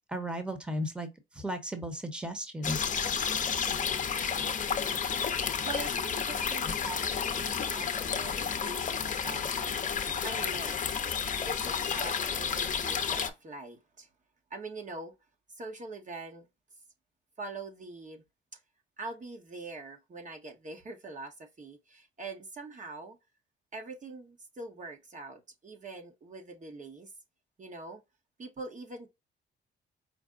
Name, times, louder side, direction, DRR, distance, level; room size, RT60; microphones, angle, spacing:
voice 1, 0.1-1.1 1.3-2.9, equal, 5° right, 1.1 m, -35 dB
sound 1, 2.6-13.3, left 7 dB, 40° left, 0.7 m, -31 dB
voice 2, 5.4-10.8 11.4-14.1 14.5-15.1 15.5-16.5 17.4-18.2 18.5-18.6 19.0-23.2 23.7-27.1 27.6-28.0 28.4-29.1, right 3 dB, 40° right, 1.2 m, -43 dB
5.2 x 2.1 x 3.7 m
cardioid pair, 90°, 20 cm